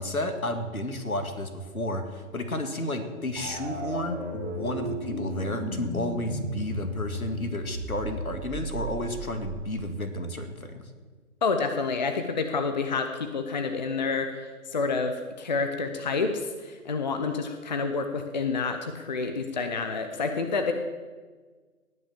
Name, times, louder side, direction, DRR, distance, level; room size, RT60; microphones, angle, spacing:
voice 1, 0.0-10.9, left 1 dB, 75° left, 7 dB, 2.1 m, -32 dB
sound 1, 3.4-10.0, equal, 20° right, 2.3 m, -35 dB
voice 2, 11.4-20.7, left 4 dB, 30° left, 7 dB, 0.7 m, -29 dB
18.0 x 6.1 x 7.1 m, 1.4 s
figure-of-eight pair, 140°, 43 cm